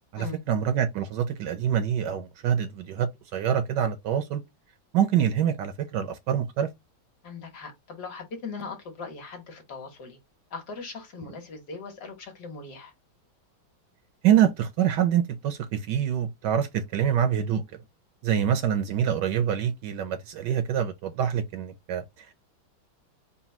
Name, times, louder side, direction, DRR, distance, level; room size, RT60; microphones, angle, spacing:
voice 1, 0.1-4.4 4.9-6.7 14.2-17.6 18.2-22.3, right 9 dB, 75° right, 1.1 m, -25 dB
voice 2, 7.2-10.2 10.5-12.9, left 4 dB, 60° left, 1.6 m, -39 dB
4.1 x 2.2 x 4.2 m
omnidirectional pair, 2.1 m